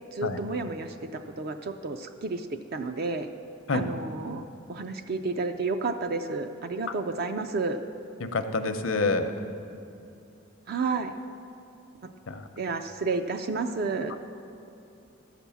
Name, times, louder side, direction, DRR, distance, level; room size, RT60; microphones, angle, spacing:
voice 1, 0.1-3.3 3.7-4.4 4.7-7.8 10.7-11.1 12.6-14.1, right 3 dB, 50° right, 7 dB, 0.4 m, -31 dB
voice 2, 8.2-9.3 12.3-12.5 14.1-14.2, left 3 dB, 70° left, 8 dB, 0.7 m, -27 dB
13.0 x 5.9 x 7.0 m, 2.7 s
head